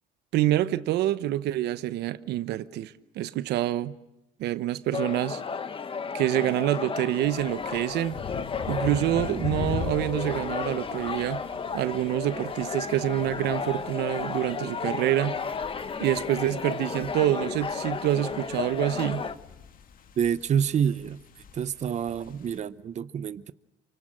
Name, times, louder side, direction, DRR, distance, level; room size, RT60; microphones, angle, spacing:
voice 1, 0.3-3.9 4.4-5.4 6.1-8.2 8.7-11.4 11.7-15.4 16.0-19.3, right 13 dB, 80° right, 1.1 m, -27 dB
sound 1, 4.9-19.3, left 5 dB, 30° left, 1.6 m, -33 dB
sound 2, 7.2-22.6, left 7 dB, 55° left, 2.2 m, -41 dB
voice 2, 20.2-23.5, right 8 dB, 45° right, 0.9 m, -28 dB
28.5 x 24.5 x 7.7 m
cardioid pair, 110°, 17 cm